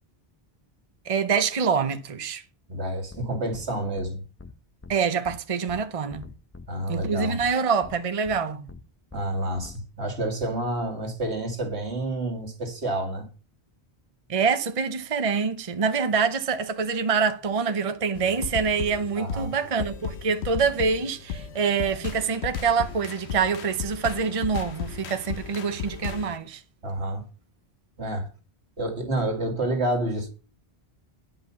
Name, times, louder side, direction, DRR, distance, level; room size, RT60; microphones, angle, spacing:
voice 1, 1.0-2.4 4.9-6.2 6.9-8.7 14.3-26.6, right 5 dB, 35° right, 0.8 m, -25 dB
voice 2, 2.7-4.2 6.7-7.4 9.1-13.3 19.2-19.5 26.8-27.2 28.0-28.3 28.8-30.3, right 1 dB, 85° right, 2.4 m, -29 dB
sound 1, 3.1-3.2 3.5-3.7 4.0-4.1 4.4-4.5 4.8-4.9 5.2-5.4 5.7-5.8 6.1-6.7 7.0-7.1 7.4-7.5 7.8-7.9 8.2-8.4 8.7-8.8 9.1-9.2 9.5-9.8, left 4 dB, 15° left, 0.6 m, -43 dB
sound 2, 18.1-26.4, left 7 dB, 85° left, 1.1 m, -35 dB
10.0 x 5.6 x 6.8 m
omnidirectional pair, 1.1 m